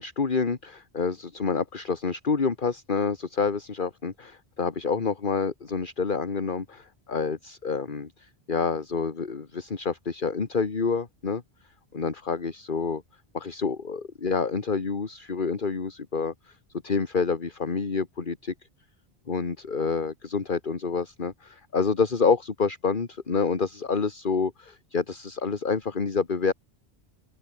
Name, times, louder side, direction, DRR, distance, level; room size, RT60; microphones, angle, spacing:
voice 1, 0.0-11.4 11.9-13.0 13.3-16.6 16.8-18.5 19.3-26.5, left 5 dB, 50° left, 1.7 m, -28 dB
open air
omnidirectional pair, 1.1 m